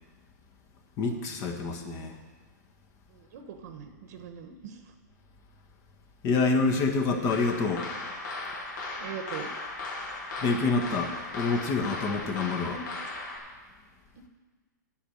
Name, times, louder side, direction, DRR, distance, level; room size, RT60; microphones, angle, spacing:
voice 1, 1.0-2.2 6.2-7.9 10.4-12.8, left 4 dB, 30° left, 4 dB, 1.4 m, -27 dB
voice 2, 3.1-4.8 9.0-9.5 12.7-12.8, right 8 dB, 60° right, 6 dB, 1.1 m, -41 dB
sound 1, 7.3-13.4, left 2 dB, 75° left, 2.7 m, -37 dB
8.7 x 6.6 x 8.5 m, 1.4 s
hypercardioid pair, 140°, 10 cm